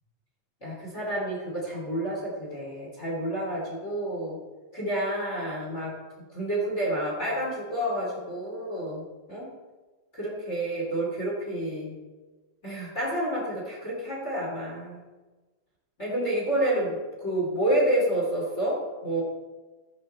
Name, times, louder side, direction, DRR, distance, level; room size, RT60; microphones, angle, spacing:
voice 1, 0.6-4.4 4.7-5.9 6.3-9.0 9.3-9.5 10.1-11.9 12.6-15.0 16.0-19.2, right 1 dB, 20° left, -5 dB, 1.8 m, -29 dB
16.0 x 5.5 x 4.3 m, 1.2 s
omnidirectional pair, 5.8 m